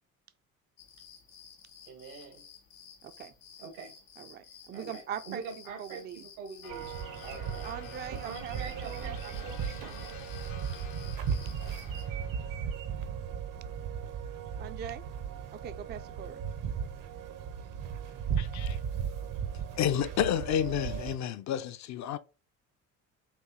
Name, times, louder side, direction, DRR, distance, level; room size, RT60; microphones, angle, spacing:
sound 1, 0.8-12.0, left 6 dB, 90° left, 0.8 m, -54 dB
voice 1, 1.9-2.4 3.6-3.9 4.7-6.9 7.2-7.7 8.2-10.2, right 5 dB, 80° right, 1.6 m, -44 dB
voice 2, 3.0-3.3 4.2-5.5 5.8-6.3 7.6-9.6 14.6-15.0 15.5-16.4, right 8 dB, 25° right, 0.4 m, -42 dB
sound 2, 6.6-12.9, left 9 dB, 65° left, 1.1 m, -51 dB
sound 3, 6.7-21.2, right 7 dB, 50° right, 0.7 m, -36 dB
voice 3, 18.4-18.8 19.8-22.2, left 9 dB, 45° left, 0.5 m, -30 dB
4.2 x 2.7 x 3.7 m
hypercardioid pair, 55°, 41 cm